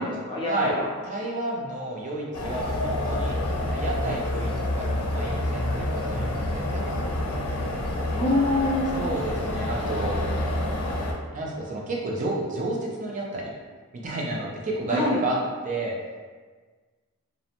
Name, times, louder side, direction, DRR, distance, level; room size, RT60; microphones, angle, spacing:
voice 1, 0.0-0.9 8.1-9.0 14.9-15.2, left 2 dB, 20° left, -7 dB, 0.6 m, -25 dB
voice 2, 1.0-3.4 3.7-4.5 4.7-6.9 8.9-10.2 11.3-13.5 14.0-15.4 15.6-16.0, right 2 dB, 35° right, -2 dB, 0.4 m, -31 dB
sound 1, 2.3-11.1, left 1 dB, 85° left, 0.5 m, -28 dB
2.5 x 2.0 x 2.8 m, 1.4 s
head